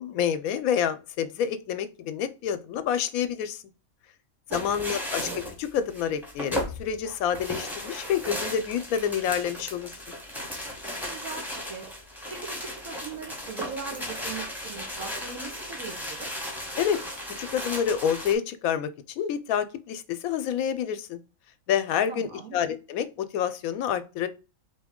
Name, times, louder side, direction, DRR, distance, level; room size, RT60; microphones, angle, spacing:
voice 1, 0.0-3.6 4.5-9.9 16.8-17.0 17.4-18.9 19.2-21.2 21.7-24.3, left 8 dB, 85° left, 1.0 m, -28 dB
sound 1, 4.5-18.3, equal, ahead, 0.7 m, -36 dB
voice 2, 4.5-5.0 10.8-11.9 12.3-16.3 22.1-22.6, right 5 dB, 90° right, 1.6 m, -40 dB
4.0 x 2.9 x 3.6 m
omnidirectional pair, 1.5 m